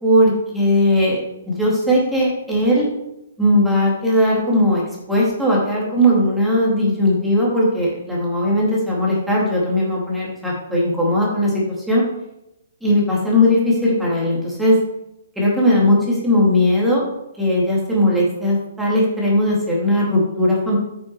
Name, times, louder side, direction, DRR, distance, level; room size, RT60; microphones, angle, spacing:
voice 1, 0.0-2.9 3.4-12.0 12.8-14.8 15.4-17.0 17.4-20.8, left 1 dB, ahead, -6 dB, 2.3 m, -18 dB
9.5 x 6.3 x 4.7 m, 0.91 s
hypercardioid pair, 160°, 0 cm